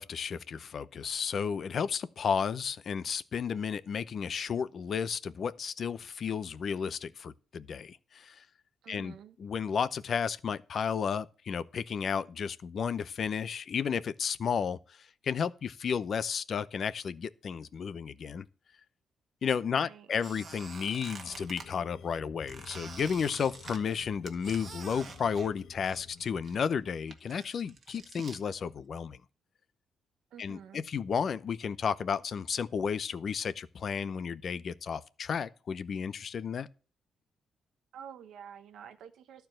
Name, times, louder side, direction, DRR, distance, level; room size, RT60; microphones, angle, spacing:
voice 1, 0.0-8.4 8.9-9.1 9.4-18.5 19.4-29.2 30.4-36.7, left 6 dB, 50° left, 0.6 m, -33 dB
voice 2, 8.8-9.4 19.6-20.1 30.3-30.8 37.9-39.5, right 8 dB, 80° right, 1.2 m, -49 dB
Squeak, 20.2-21.7 22.5-26.2 26.4-28.4, right 4 dB, 45° right, 1.6 m, -47 dB
sound 1, 21.2-26.4, left 6 dB, 85° left, 1.2 m, -52 dB
12.0 x 4.7 x 7.6 m
cardioid pair, 105°, 0 cm